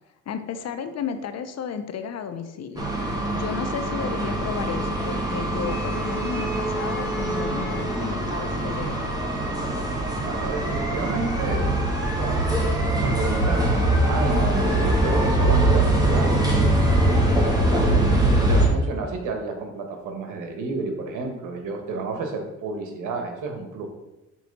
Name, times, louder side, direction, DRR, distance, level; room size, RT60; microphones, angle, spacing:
voice 1, 0.3-2.9 3.3-9.0, left 7 dB, 55° left, 9 dB, 0.8 m, -33 dB
sound 1, 2.8-18.7, right 1 dB, 15° right, 1.8 m, -22 dB
voice 2, 10.2-11.7 12.1-12.5 13.0-16.4 17.3-23.9, right 3 dB, 90° right, 4 dB, 1.4 m, -31 dB
6.2 x 4.1 x 5.3 m, 0.99 s
cardioid pair, 90°, 30 cm